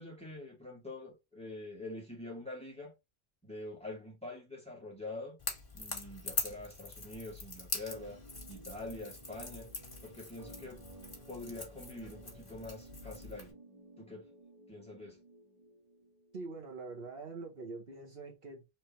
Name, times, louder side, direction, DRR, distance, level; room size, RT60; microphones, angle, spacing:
voice 1, 0.0-2.9 3.4-5.4 5.7-8.2 8.5-9.7 10.0-10.8 11.3-13.5 14.0-14.3 14.7-15.2, left 2 dB, 5° left, 2.6 m, -45 dB
Crackle / Crack, 5.4-13.5, left 3 dB, 55° left, 2.0 m, -43 dB
sound 1, 7.9-16.8, right 3 dB, 40° right, 1.7 m, -56 dB
voice 2, 16.3-18.6, right 3 dB, 65° right, 1.5 m, -44 dB
4.5 x 3.7 x 3.2 m
omnidirectional pair, 1.1 m